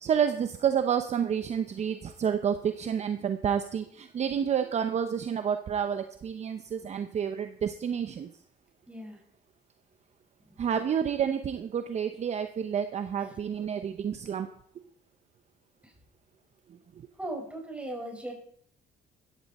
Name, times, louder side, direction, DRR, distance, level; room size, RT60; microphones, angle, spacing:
voice 1, 0.0-8.3 10.6-14.5, right 8 dB, 40° right, 9 dB, 0.8 m, -29 dB
voice 2, 8.9-9.2 17.2-18.3, right 1 dB, 5° right, 1 dB, 5.4 m, -37 dB
14.5 x 12.0 x 4.3 m, 0.65 s
cardioid pair, 110°, 17 cm